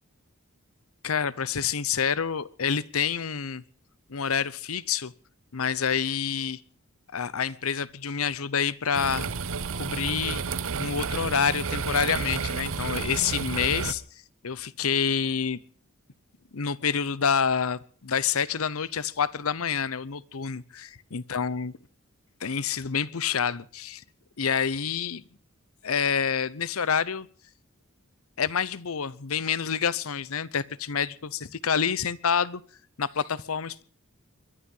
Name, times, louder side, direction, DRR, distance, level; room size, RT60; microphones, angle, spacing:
voice 1, 1.0-3.6 4.1-5.1 5.5-6.6 7.1-9.3 9.7-10.4 10.8-14.0 14.4-15.6 16.5-21.7 22.4-24.0 24.4-25.2 25.8-27.3 28.4-32.6 33.0-33.8, left 7 dB, 85° left, 20 dB, 0.8 m, -28 dB
sound 1, 8.9-13.9, right 5 dB, 70° right, 0.8 m, -31 dB
22.5 x 11.5 x 5.5 m, 0.43 s
head